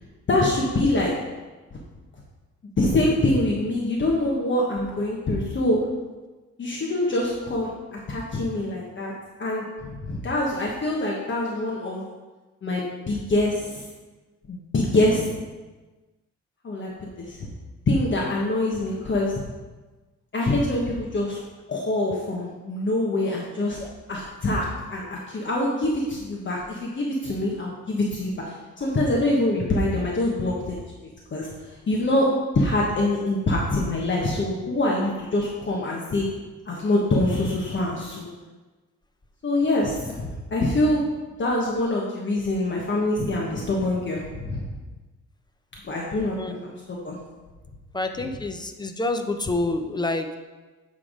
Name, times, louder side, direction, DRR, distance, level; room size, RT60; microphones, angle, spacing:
voice 1, 0.3-1.1 2.8-5.8 6.6-9.1 9.4-12.0 12.6-13.8 14.5-15.3 16.6-16.9 17.2-17.5 17.9-19.3 20.3-21.4 21.7-23.8 24.1-30.8 31.3-31.5 31.9-32.3 32.5-36.2 36.7-38.3 39.4-41.0 41.4-44.7 45.8-47.2, left 1 dB, 40° left, -3 dB, 1.2 m, -25 dB
voice 2, 46.4-46.7 47.9-50.4, left 2 dB, 15° left, 6 dB, 0.7 m, -28 dB
8.5 x 3.6 x 4.9 m, 1.2 s
cardioid pair, 90°, 30 cm